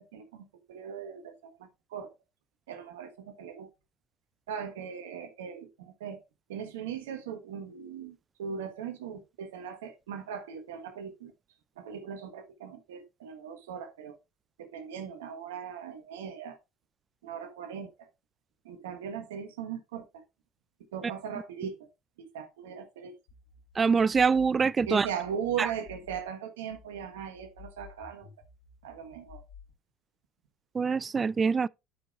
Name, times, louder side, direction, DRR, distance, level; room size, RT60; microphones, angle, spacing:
voice 1, 0.1-2.1 2.7-3.7 4.5-6.2 6.5-11.3 11.8-14.2 14.6-16.6 17.2-18.1 18.6-20.2 20.9-21.9 22.2-23.2 24.8-28.3 28.8-29.4, right 7 dB, 85° right, 1.4 m, -39 dB
sound 1, 23.3-26.3 26.7-29.7, left 6 dB, 80° left, 3.4 m, -53 dB
voice 2, 23.8-25.1 25.6-25.7 30.7-31.7, right 5 dB, 30° right, 0.3 m, -24 dB
12.0 x 5.3 x 2.5 m
hypercardioid pair, 75°, 0 cm